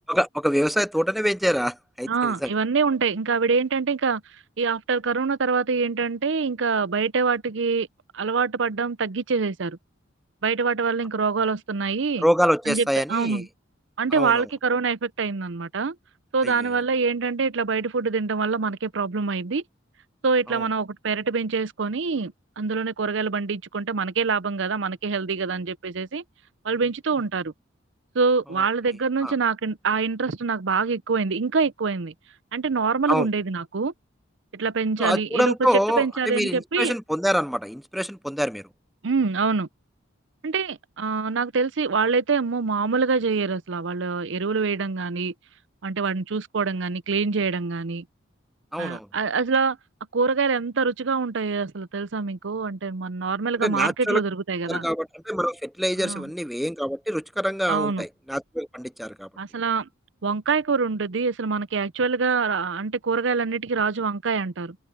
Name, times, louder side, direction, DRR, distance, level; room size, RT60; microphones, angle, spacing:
voice 1, 0.1-2.5 12.2-13.4 14.1-14.4 16.4-16.5 20.5-20.6 29.2-29.3 33.1-33.3 35.0-38.6 48.7-49.1 53.6-54.2 54.7-59.3, equal, ahead, 0.3 m, -25 dB
voice 2, 2.1-4.2 4.6-7.9 8.1-9.8 10.4-12.2 12.7-13.5 14.0-16.0 16.3-19.6 20.2-26.2 26.6-27.5 28.1-32.1 32.5-33.9 34.5-35.7 36.0-37.0 39.0-39.7 40.4-45.3 45.8-48.0 48.8-49.8 50.1-54.9 56.0-56.3 57.7-58.0 59.4-59.9 60.2-64.8, right 4 dB, 65° right, 0.6 m, -25 dB
head